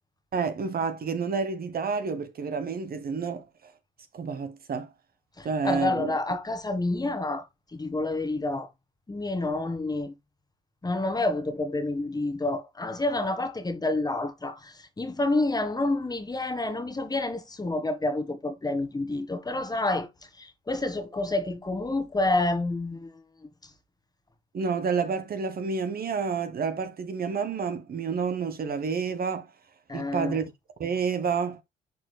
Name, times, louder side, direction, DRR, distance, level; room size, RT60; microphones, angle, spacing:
voice 1, 0.3-3.7 4.1-4.9 5.4-6.2 24.5-29.5 29.9-30.4 30.8-31.6, right 5 dB, 45° right, 1.2 m, -29 dB
voice 2, 5.4-7.5 7.7-8.7 9.1-10.1 10.8-20.1 20.4-23.1 29.9-30.4, left 2 dB, 20° left, 1.5 m, -28 dB
11.0 x 4.5 x 2.2 m
cardioid pair, 85°, 21 cm